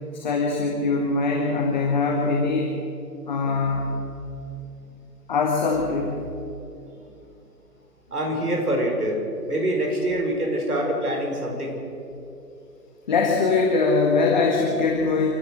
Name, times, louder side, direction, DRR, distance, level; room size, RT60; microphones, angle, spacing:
voice 1, 0.1-2.7 3.2-4.0 5.3-6.2 13.1-15.3, left 4 dB, 25° left, 1 dB, 1.7 m, -22 dB
voice 2, 8.1-9.2 9.5-11.8, right 1 dB, 65° right, 1 dB, 5.6 m, -25 dB
27.5 x 15.0 x 6.4 m, 2.7 s
figure-of-eight pair, 145°, 49 cm